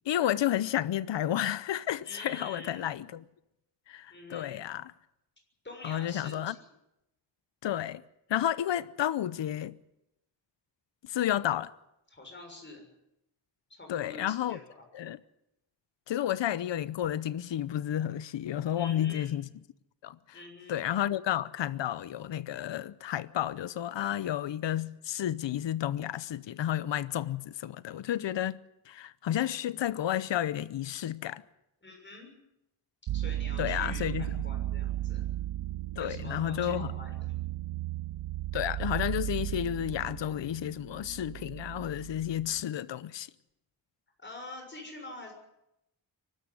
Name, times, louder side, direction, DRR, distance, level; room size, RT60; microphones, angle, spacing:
voice 1, 0.1-3.2 3.9-4.9 5.8-6.5 7.6-8.0 8.3-9.7 11.0-11.7 13.9-14.6 14.9-15.2 16.1-19.4 20.0-20.2 20.7-28.6 28.9-31.4 33.6-34.4 36.0-36.9 38.5-43.3, left 11 dB, 75° left, 0.8 m, -31 dB
voice 2, 2.0-3.0 4.1-4.6 5.6-6.7 12.1-12.8 13.7-14.8 18.7-19.4 20.3-20.8 31.8-32.3 33.1-35.2 35.9-37.3 44.2-45.3, left 2 dB, 25° left, 6.7 m, -46 dB
sound 1, 33.1-42.6, right 14 dB, 80° right, 0.7 m, -35 dB
24.0 x 13.0 x 9.7 m
wide cardioid pair, 145°, 44 cm